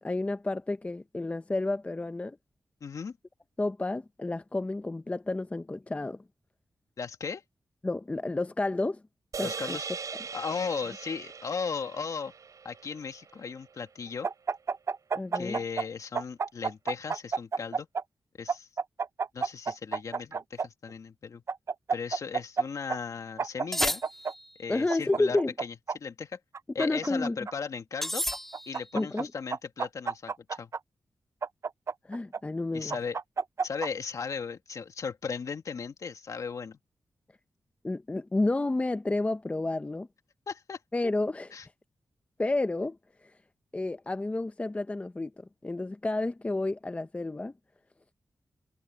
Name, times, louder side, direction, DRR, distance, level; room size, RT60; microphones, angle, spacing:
voice 1, 0.0-2.4 3.6-6.2 7.8-9.0 9.4-9.8 15.1-15.6 24.7-25.5 26.8-27.4 28.9-29.3 32.1-32.9 37.8-40.1 40.9-41.5 42.4-43.0 43.7-47.5, left 2 dB, 20° left, 0.7 m, -30 dB
voice 2, 2.8-3.2 7.0-7.4 9.4-9.9 10.3-12.3 12.6-14.3 15.3-17.9 18.4-18.7 19.3-21.4 21.9-24.0 24.6-26.4 26.7-28.2 28.7-30.7 32.7-33.2 33.6-36.8 40.5-40.8 41.5-41.7, left 5 dB, 65° left, 2.2 m, -36 dB
sound 1, 9.3-13.7, right 5 dB, 65° right, 6.2 m, -40 dB
sound 2, 14.2-15.9 16.2-18.0 18.5-20.7 21.5-22.6 22.9-23.0 23.4-24.3 24.9-26.0 26.5-27.5 28.3-29.2 29.5-30.8 31.4-32.4 32.9-33.9, right 5 dB, 50° right, 0.5 m, -30 dB
sound 3, 23.7-24.6 28.0-28.9, equal, 5° left, 3.3 m, -32 dB
wide cardioid pair, 90°, 6 cm